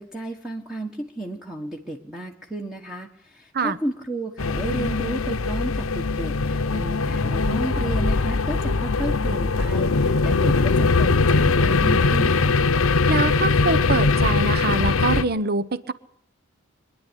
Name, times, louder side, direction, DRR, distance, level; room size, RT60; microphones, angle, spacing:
voice 1, 0.0-12.6, right 2 dB, 5° right, 1 dB, 1.5 m, -33 dB
sound 1, 4.4-15.2, left 3 dB, 90° left, 0.8 m, -21 dB
voice 2, 13.1-15.9, right 3 dB, 50° right, 14 dB, 0.9 m, -24 dB
24.5 x 10.5 x 10.0 m, 0.68 s
head